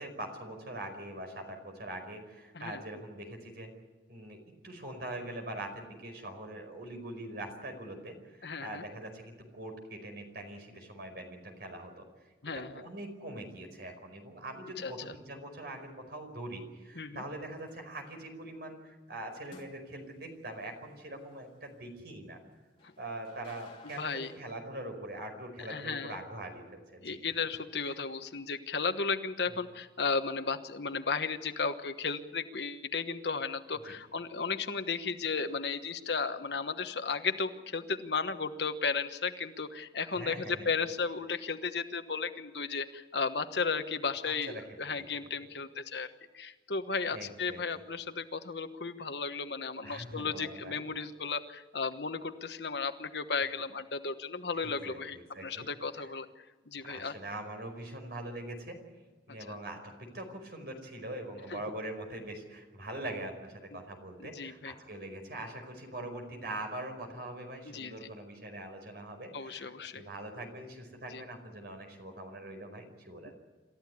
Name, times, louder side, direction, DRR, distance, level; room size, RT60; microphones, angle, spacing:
voice 1, 0.0-3.7 4.1-12.1 12.5-22.4 23.0-27.2 27.9-28.0 40.1-40.7 44.2-45.0 47.1-47.6 49.8-50.8 54.6-55.7 56.8-58.8 59.3-73.3, right 1 dB, 60° right, 5 dB, 5.1 m, -43 dB
voice 2, 8.4-8.8 12.4-12.8 14.8-15.1 16.9-17.2 22.8-22.9 24.0-24.3 25.6-26.2 27.0-57.2 59.5-59.6 61.5-61.6 63.7-63.8 64.2-64.7 67.6-68.1 69.3-70.0 71.1-71.2, left 5 dB, 65° left, 9 dB, 1.2 m, -35 dB
sound 1, 17.6-18.0 19.4-20.3 22.8-24.6, left 3 dB, 30° left, 2.7 m, -55 dB
27.5 x 14.0 x 9.7 m, 1.3 s
head